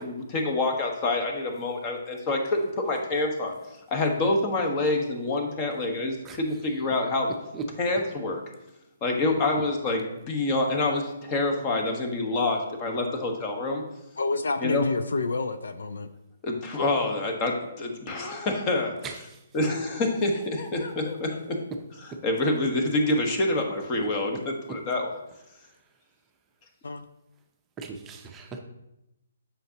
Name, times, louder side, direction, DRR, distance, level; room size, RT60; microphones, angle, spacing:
voice 1, 0.0-3.6 3.9-7.3 7.8-8.4 9.0-13.8 14.6-14.9 16.4-19.3 19.5-21.6 21.9-25.2, left 2 dB, 30° left, 3 dB, 1.2 m, -27 dB
voice 2, 14.2-16.1 26.8-27.1, left 3 dB, 75° left, 11 dB, 0.4 m, -28 dB
voice 3, 27.8-28.6, right 6 dB, 15° right, 2 dB, 0.6 m, -38 dB
7.8 x 5.7 x 2.9 m, 0.90 s
hypercardioid pair, 140°, 0 cm